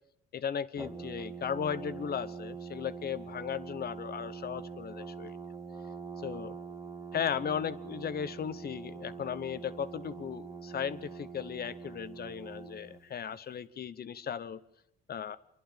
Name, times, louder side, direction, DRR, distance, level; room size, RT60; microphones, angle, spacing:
voice 1, 0.3-5.4 6.2-6.6 7.1-14.6 15.1-15.4, left 8 dB, 50° left, 13 dB, 1.0 m, -36 dB
Brass instrument, 0.8-13.0, right 5 dB, 15° right, 2.1 m, -44 dB
26.5 x 11.5 x 9.0 m, 0.83 s
cardioid pair, 90°, 20 cm